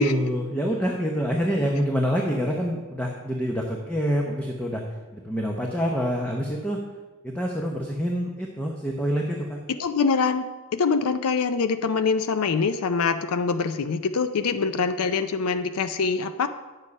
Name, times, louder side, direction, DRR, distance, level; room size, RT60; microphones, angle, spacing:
voice 1, 0.0-4.8 5.1-6.8 7.2-9.6, equal, 5° left, -1 dB, 0.8 m, -26 dB
voice 2, 9.7-16.5, left 5 dB, 80° left, 9 dB, 0.5 m, -24 dB
9.8 x 7.2 x 5.3 m, 1.2 s
head